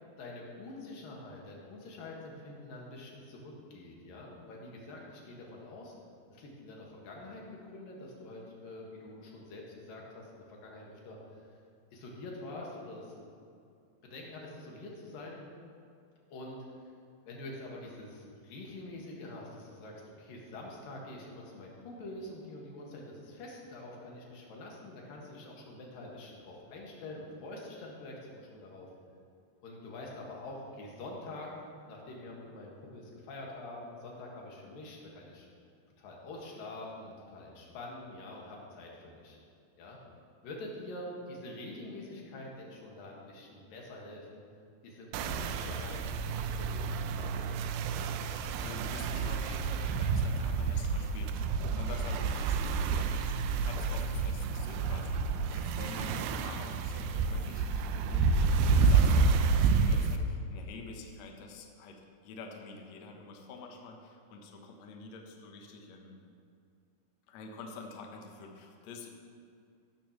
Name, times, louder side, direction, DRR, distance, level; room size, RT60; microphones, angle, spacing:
voice 1, 0.2-5.9 6.3-7.4 7.7-11.2 11.5-11.6 11.9-13.4 14.1-15.4 16.3-16.9 17.3-28.9 29.6-31.5 31.9-35.5 36.0-39.4 39.8-40.0 40.4-44.4 44.8-46.0 46.3-47.8, left 2 dB, 60° left, -2 dB, 3.2 m, -46 dB
sound 1, 45.1-60.2, right 4 dB, 80° right, 2.2 m, -29 dB
voice 2, 48.6-66.2 67.3-69.1, left 4 dB, 90° left, 2 dB, 1.5 m, -48 dB
15.5 x 12.5 x 3.1 m, 2.4 s
omnidirectional pair, 4.8 m